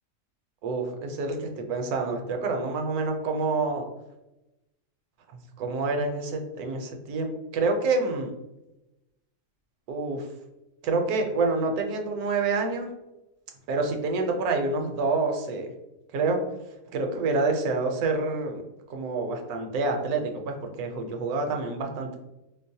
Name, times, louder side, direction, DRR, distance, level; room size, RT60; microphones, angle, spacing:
voice 1, 0.6-3.9 5.3-8.3 9.9-10.3 10.8-12.9 13.7-15.7 16.1-16.4 16.9-18.6 18.9-22.2, right 3 dB, 70° right, 4 dB, 1.0 m, -27 dB
4.5 x 2.0 x 2.7 m, 0.95 s
omnidirectional pair, 1.8 m